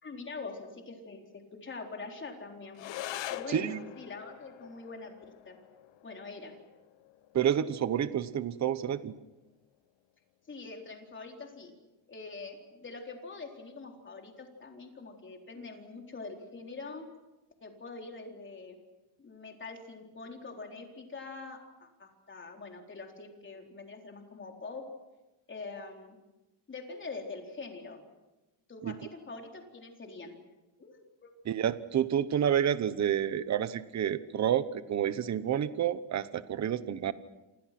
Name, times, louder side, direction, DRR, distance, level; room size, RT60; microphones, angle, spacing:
voice 1, 0.0-2.9 3.3-5.1 5.5-5.6 6.0-6.6 10.5-11.7 12.1-17.1 17.6-18.8 19.2-24.8 25.5-26.2 26.7-28.0 28.7-30.4 30.8-31.3 36.8-37.1, left 3 dB, 25° left, 2 dB, 4.0 m, -44 dB
sound 1, 2.7-11.7, left 13 dB, 65° left, 1.3 m, -46 dB
voice 2, 3.5-3.8 7.3-9.1 28.8-28.9 31.5-37.1, right 9 dB, 35° right, 14 dB, 1.0 m, -29 dB
28.0 x 27.5 x 6.0 m, 1.1 s
cardioid pair, 155°, 47 cm